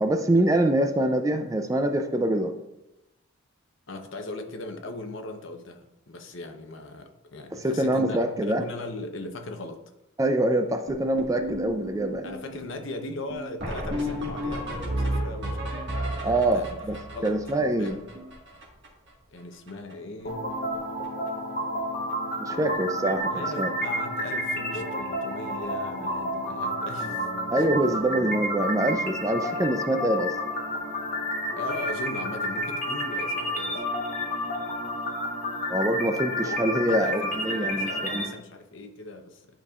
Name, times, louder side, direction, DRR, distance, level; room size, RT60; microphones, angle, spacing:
voice 1, 0.0-2.5 7.5-8.6 10.2-12.3 16.2-17.0 17.2-18.0 22.4-23.7 27.5-30.4 35.7-38.3, right 1 dB, 15° right, 7 dB, 0.4 m, -25 dB
voice 2, 3.9-9.8 12.2-15.6 16.0-16.8 17.1-17.4 17.8-18.0 19.3-20.4 23.2-27.4 27.9-28.0 31.6-33.9 36.4-36.6 36.9-39.5, left 2 dB, 65° left, 5 dB, 0.9 m, -38 dB
sound 1, 10.9-19.1 19.4-19.5 19.7-19.9 20.2-20.7 21.0-21.3 22.1-22.2 22.6-22.7 23.0-23.2 25.4-25.5 27.8-27.9, equal, 55° right, 1.7 m, -33 dB
sound 2, 20.2-38.2, equal, 40° left, 1.1 m, -30 dB
10.5 x 5.2 x 2.4 m, 0.92 s
head